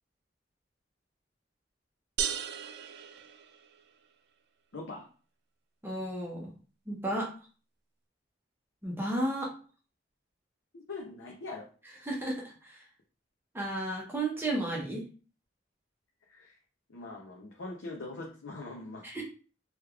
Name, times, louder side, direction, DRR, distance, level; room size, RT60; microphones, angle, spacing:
sound 1, 2.2-4.0, right 8 dB, 60° right, 0.3 m, -36 dB
voice 1, 4.7-5.1 10.7-11.7 16.3-16.6 16.9-19.2, left 3 dB, 90° left, -2 dB, 0.7 m, -42 dB
voice 2, 5.8-6.5 6.9-7.3 8.8-9.5 12.0-12.7 13.5-15.0 19.0-19.2, right 1 dB, 10° right, -2 dB, 0.7 m, -33 dB
3.3 x 3.0 x 2.4 m, 0.37 s
head